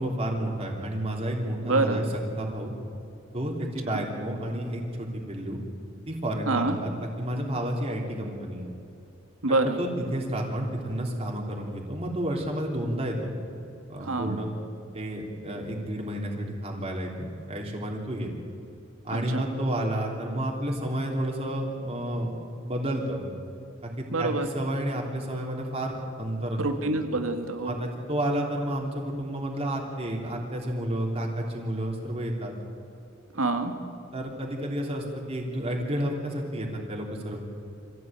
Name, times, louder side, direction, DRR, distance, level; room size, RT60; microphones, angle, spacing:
voice 1, 0.0-2.0 2.4-2.7 3.3-5.6 6.1-8.7 9.6-13.2 13.9-14.5 14.9-18.3 19.0-22.4 22.6-23.2 23.8-24.3 24.5-26.9 27.7-32.5 34.1-37.4, right 1 dB, 30° right, -1 dB, 3.3 m, -31 dB
voice 2, 1.6-2.1 3.9-4.0 6.5-6.8 9.4-9.8 14.0-14.4 19.1-19.4 24.1-24.5 26.6-27.8 33.3-33.8, right 2 dB, 90° right, 6 dB, 2.1 m, -26 dB
25.0 x 16.0 x 9.1 m, 2.6 s
head